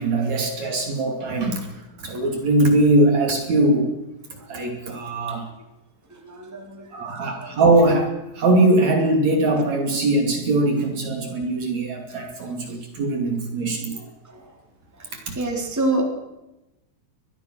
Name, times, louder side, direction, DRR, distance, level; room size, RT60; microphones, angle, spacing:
voice 1, 0.0-1.6 2.0-3.9 4.5-5.5 6.9-13.9 15.1-15.4, right 2 dB, 50° right, 4 dB, 3.7 m, -21 dB
voice 2, 6.2-6.9 7.2-7.5 13.9-14.4 15.3-16.0, right 2 dB, 5° right, 2 dB, 3.1 m, -28 dB
23.5 x 20.0 x 6.3 m, 0.97 s
omnidirectional pair, 4.1 m